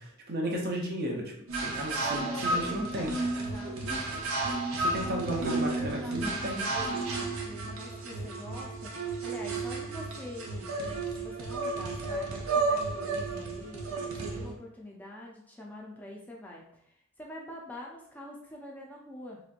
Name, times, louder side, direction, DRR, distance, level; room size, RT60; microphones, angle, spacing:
voice 1, 0.0-1.3 1.6-3.1 3.8-4.2 4.8-6.6, right 1 dB, 50° right, 0 dB, 0.7 m, -34 dB
sound 1, 1.5-14.5, right 3 dB, 85° right, 0.7 m, -32 dB
voice 2, 1.9-4.0 5.0-19.4, left 1 dB, 10° left, -3 dB, 0.4 m, -45 dB
3.1 x 3.0 x 2.5 m, 0.70 s
head